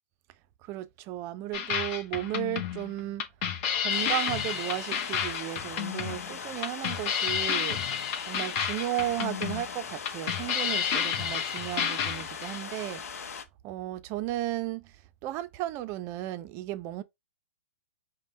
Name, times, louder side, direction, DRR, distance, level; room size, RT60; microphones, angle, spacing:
voice 1, 0.6-3.3 3.8-7.8 8.3-13.0 13.6-15.0 15.2-17.0, right 14 dB, 30° right, 0.5 m, -34 dB
sound 1, 1.5-12.6, left 8 dB, 40° left, 1.0 m, -31 dB
sound 2, 3.9-13.4, left 6 dB, 70° left, 0.8 m, -40 dB
5.3 x 2.2 x 3.8 m
hypercardioid pair, 125°, 8 cm